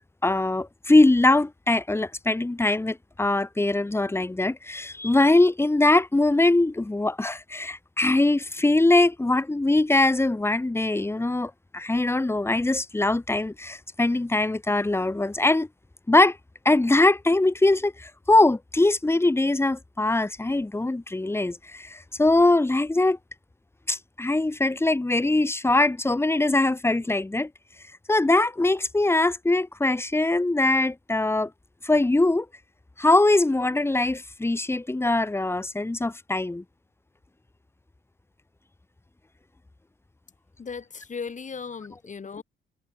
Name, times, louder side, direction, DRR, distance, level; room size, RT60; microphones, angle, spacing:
voice 1, 0.2-15.7 16.1-16.4 16.7-23.2 23.9-27.5 28.1-31.5 31.8-32.5 33.0-36.6, left 2 dB, 10° left, 1.8 m, -22 dB
voice 2, 40.6-42.4, left 5 dB, 40° left, 7.8 m, -36 dB
cardioid pair, 90°, 20 cm